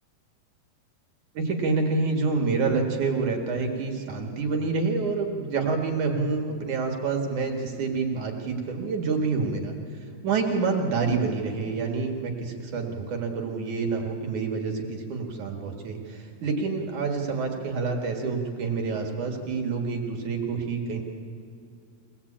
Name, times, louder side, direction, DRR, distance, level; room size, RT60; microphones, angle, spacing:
voice 1, 1.3-9.8 10.2-21.0, right 4 dB, 60° right, 2 dB, 2.9 m, -27 dB
24.0 x 18.0 x 8.6 m, 2.5 s
omnidirectional pair, 4.3 m